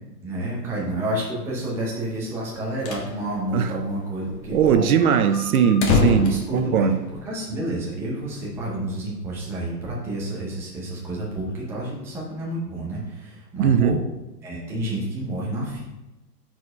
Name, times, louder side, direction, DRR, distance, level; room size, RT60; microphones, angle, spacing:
voice 1, 0.2-4.9 6.0-6.9 7.2-14.0 14.4-15.8, right 1 dB, 5° right, -5 dB, 0.6 m, -29 dB
sound 1, 2.5-3.1 3.4-3.5 3.8-3.9 4.3-7.3, left 4 dB, 40° left, 1.1 m, -25 dB
voice 2, 4.5-7.0 13.6-14.0, right 7 dB, 60° right, 10 dB, 0.5 m, -20 dB
4.6 x 4.3 x 4.9 m, 1.0 s
hypercardioid pair, 145°, 49 cm